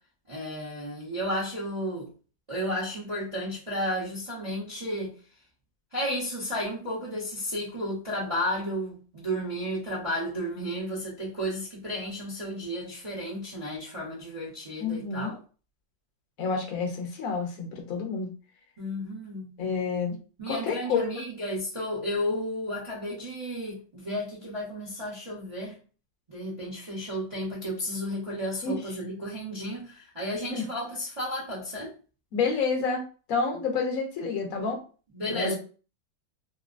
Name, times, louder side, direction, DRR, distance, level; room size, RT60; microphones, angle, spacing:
voice 1, 0.3-2.1 2.5-5.1 5.9-15.4 18.8-19.5 20.4-25.7 26.3-31.9 35.1-35.5, equal, 30° right, 0.6 m, -33 dB
voice 2, 14.8-15.3 16.4-18.3 19.6-20.2 20.5-21.1 28.6-28.8 30.5-30.7 32.3-33.0 33.3-34.8 35.3-35.5, left 5 dB, 60° left, 1.0 m, -29 dB
3.1 x 2.7 x 2.5 m
omnidirectional pair, 2.0 m